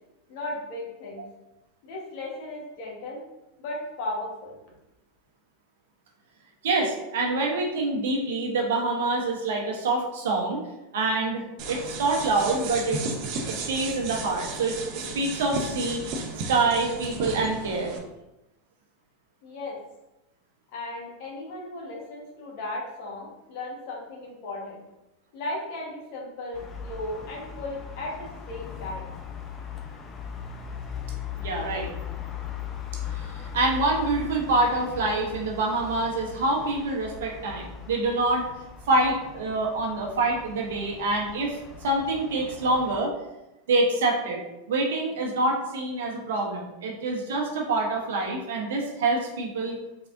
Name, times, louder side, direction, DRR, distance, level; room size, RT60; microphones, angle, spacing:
voice 1, 0.3-1.2 1.8-3.2 3.6-4.5 19.4-19.8 20.7-24.8 25.3-29.1, left 2 dB, 60° left, -2 dB, 1.3 m, -36 dB
voice 2, 6.6-10.6 10.9-13.0 13.5-16.0 16.5-17.9 31.4-31.9 33.1-38.5 38.9-43.1 43.7-44.4 44.7-49.8, right 2 dB, 75° right, 0 dB, 0.9 m, -26 dB
sound 1, 11.6-18.0, right 3 dB, 55° right, 0.7 m, -34 dB
sound 2, 26.5-43.0, left 8 dB, 30° left, 0.6 m, -39 dB
4.0 x 3.4 x 2.6 m, 0.97 s
hypercardioid pair, 100°, 0 cm